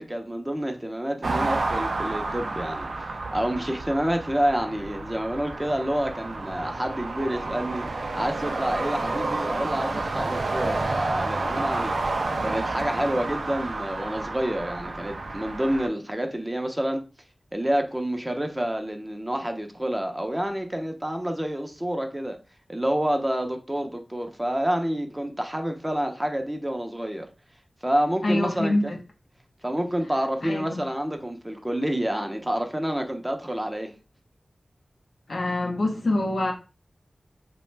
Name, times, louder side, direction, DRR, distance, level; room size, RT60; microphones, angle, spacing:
voice 1, 0.0-7.9 8.2-11.9 12.4-17.0 17.5-22.4 22.7-27.3 27.8-28.9 29.6-33.9, right 1 dB, 15° right, 0.5 m, -28 dB
sound 1, 1.2-15.9, right 3 dB, 80° right, 0.3 m, -30 dB
voice 2, 28.2-29.0 30.4-30.8 35.3-36.5, left 2 dB, 75° left, 0.5 m, -25 dB
2.4 x 2.1 x 3.1 m
cardioid pair, 45°, 0 cm